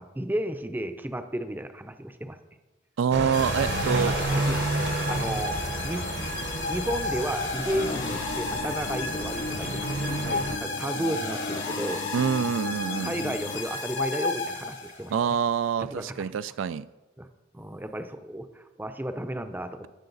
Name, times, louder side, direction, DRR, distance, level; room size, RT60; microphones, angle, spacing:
voice 1, 0.0-2.4 4.1-4.6 5.1-5.6 5.8-6.1 6.7-12.1 13.0-15.1 15.9-16.2 17.2-17.3 17.5-19.9, right 1 dB, 10° right, 8 dB, 0.6 m, -33 dB
voice 2, 3.0-4.1 12.1-13.1 15.1-16.9, right 7 dB, 80° right, 15 dB, 0.3 m, -26 dB
sound 1, 3.1-10.6, right 2 dB, 60° right, 1.1 m, -31 dB
sound 2, 3.3-15.1, left 3 dB, 80° left, 4.0 m, -33 dB
sound 3, 7.7-13.6, left 3 dB, 60° left, 0.6 m, -38 dB
19.0 x 6.6 x 4.0 m, 1.1 s
head